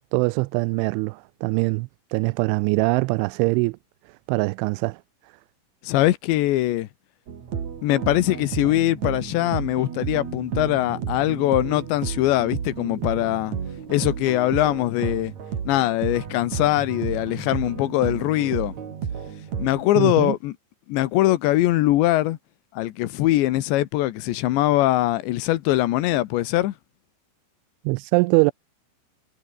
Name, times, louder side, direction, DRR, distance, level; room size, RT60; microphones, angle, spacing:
voice 1, 0.1-3.8 4.3-5.0 20.0-20.4 27.9-28.5, right 26 dB, 85° right, 2.9 m, -22 dB
voice 2, 5.8-6.9 7.8-13.5 13.9-15.3 15.7-18.7 19.6-20.6 20.9-22.4 22.7-26.7, left 15 dB, 75° left, 3.3 m, -22 dB
sound 1, 7.3-19.9, right 7 dB, 45° right, 3.3 m, -32 dB
omnidirectional pair, 5.4 m